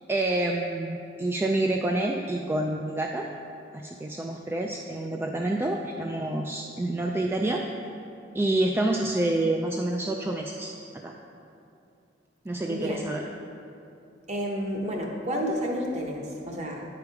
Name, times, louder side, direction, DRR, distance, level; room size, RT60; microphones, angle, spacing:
voice 1, 0.1-3.3 3.7-7.6 8.3-10.7 11.0-11.1 12.5-13.3, right 2 dB, 15° right, 1 dB, 0.3 m, -28 dB
voice 2, 12.7-13.1 14.3-16.9, equal, 40° right, 0 dB, 1.0 m, -30 dB
9.4 x 5.0 x 4.8 m, 2.6 s
head